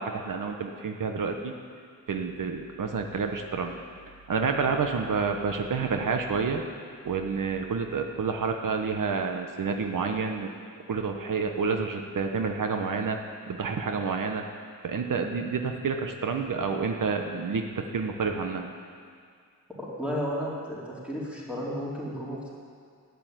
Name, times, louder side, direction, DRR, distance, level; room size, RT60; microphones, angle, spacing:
voice 1, 0.0-1.5 2.1-3.8 4.3-6.6 7.0-10.5 10.9-13.2 13.4-14.5 14.8-18.7, right 5 dB, 85° right, 4 dB, 1.1 m, -29 dB
voice 2, 19.8-22.5, equal, 5° right, -6 dB, 3.8 m, -33 dB
12.5 x 9.8 x 9.2 m, 2.2 s
wide cardioid pair, 140°, 31 cm